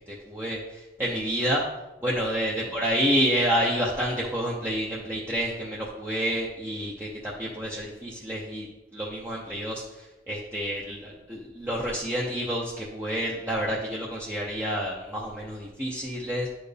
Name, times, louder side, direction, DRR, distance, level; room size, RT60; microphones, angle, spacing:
voice 1, 0.1-1.6 2.0-8.7 8.9-9.8 10.3-16.5, equal, 15° right, -5 dB, 0.8 m, -29 dB
10.5 x 4.4 x 3.4 m, 1.0 s
head